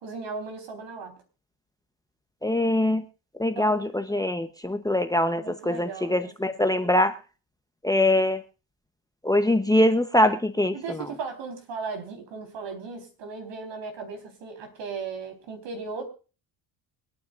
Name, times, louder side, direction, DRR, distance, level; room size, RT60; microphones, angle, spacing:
voice 1, 0.0-1.2 3.5-3.8 5.4-6.9 10.7-16.1, right 4 dB, 65° right, 5 dB, 4.1 m, -37 dB
voice 2, 2.4-3.0 3.4-7.2 7.8-8.4 9.2-11.1, left 1 dB, 10° left, 9 dB, 0.9 m, -23 dB
24.5 x 9.3 x 2.5 m, 0.35 s
cardioid pair, 100°, 47 cm